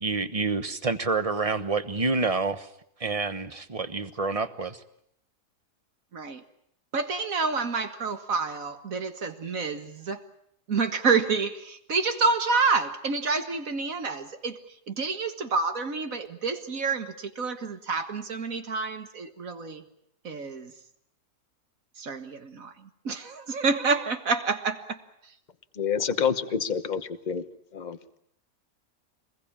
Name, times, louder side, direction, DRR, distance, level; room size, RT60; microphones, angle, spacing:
voice 1, 0.0-2.7 3.0-4.8, right 3 dB, 25° right, 11 dB, 1.0 m, -28 dB
voice 2, 6.9-10.2 10.7-19.8 20.2-20.7 22.0-25.0, right 4 dB, 55° right, 8 dB, 2.1 m, -28 dB
voice 3, 25.8-27.4 27.7-28.0, left 7 dB, 30° left, 10 dB, 1.1 m, -27 dB
25.0 x 21.0 x 8.8 m, 0.72 s
omnidirectional pair, 1.7 m